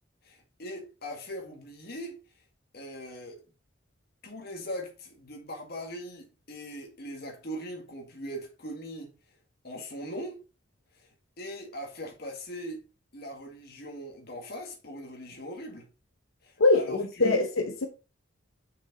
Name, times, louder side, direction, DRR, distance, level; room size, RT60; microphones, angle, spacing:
voice 1, 0.2-2.2 2.7-3.4 4.2-9.1 9.6-10.4 10.9-12.9 13.1-15.9 16.4-17.4, equal, 50° left, 1.9 m, -40 dB
voice 2, 16.6-17.9, left 3 dB, 85° left, 0.9 m, -23 dB
6.2 x 5.2 x 3.9 m
head